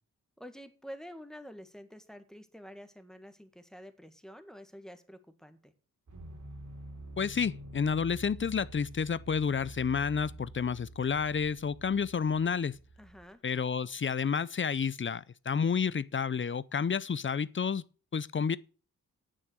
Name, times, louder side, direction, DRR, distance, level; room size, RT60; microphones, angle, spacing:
voice 1, 0.4-5.7 13.0-13.4, equal, ahead, 1.8 m, -48 dB
sound 1, 6.1-13.3, right 1 dB, 55° right, 3.0 m, -48 dB
voice 2, 7.2-12.8 13.4-17.8 18.1-18.6, left 6 dB, 35° left, 0.5 m, -30 dB
9.1 x 7.5 x 8.0 m
cardioid pair, 65°, 36 cm